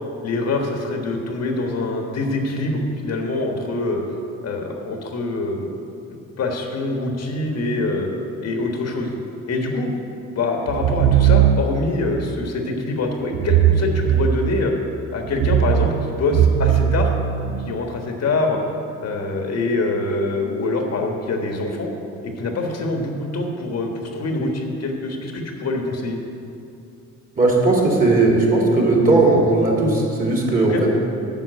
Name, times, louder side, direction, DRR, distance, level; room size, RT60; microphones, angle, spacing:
voice 1, 0.2-4.0 4.4-5.6 6.4-8.1 8.4-9.1 9.5-9.9 10.3-14.7 15.1-17.1 17.4-18.6 19.0-21.9 22.2-26.2 30.6-30.8, left 2 dB, 55° left, 2 dB, 1.5 m, -24 dB
sound 1, 10.7-12.0 13.3-14.8 15.3-17.8, right 10 dB, 70° right, 0.5 m, -19 dB
voice 2, 27.4-30.9, right 2 dB, 30° right, -2 dB, 2.7 m, -17 dB
9.3 x 5.8 x 8.1 m, 2.6 s
cardioid pair, 90°, 30 cm